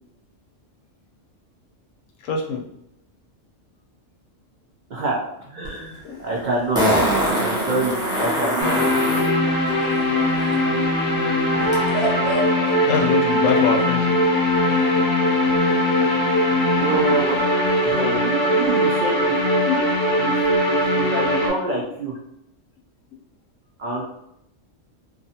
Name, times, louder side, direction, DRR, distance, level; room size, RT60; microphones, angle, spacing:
voice 1, 2.2-2.6 6.0-6.2 12.8-14.2 19.3-19.9, left 5 dB, 80° left, 0 dB, 0.9 m, -24 dB
voice 2, 5.5-8.9 10.3-10.5 16.7-17.4 17.8-19.3 20.2-20.3 20.6-22.2 23.8-24.0, right 2 dB, 75° right, -3 dB, 0.4 m, -27 dB
Fart, 5.6-5.7 6.7-9.3 11.7-11.8, equal, 5° right, 0.4 m, -22 dB
sound 1, 8.6-21.5, left 1 dB, 45° left, 0.7 m, -20 dB
misc audience laughter noises, 11.6-18.0, right 3 dB, 55° right, 0.9 m, -34 dB
2.5 x 2.4 x 2.7 m, 0.80 s
omnidirectional pair, 1.3 m